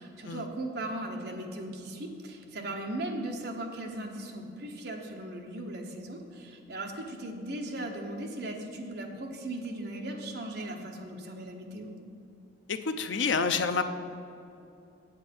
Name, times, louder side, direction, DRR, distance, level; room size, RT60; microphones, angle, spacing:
voice 1, 0.0-11.9, right 1 dB, 55° right, 2 dB, 1.1 m, -38 dB
voice 2, 12.7-13.8, left 5 dB, 75° left, 9 dB, 0.5 m, -28 dB
8.1 x 7.9 x 5.3 m, 2.7 s
head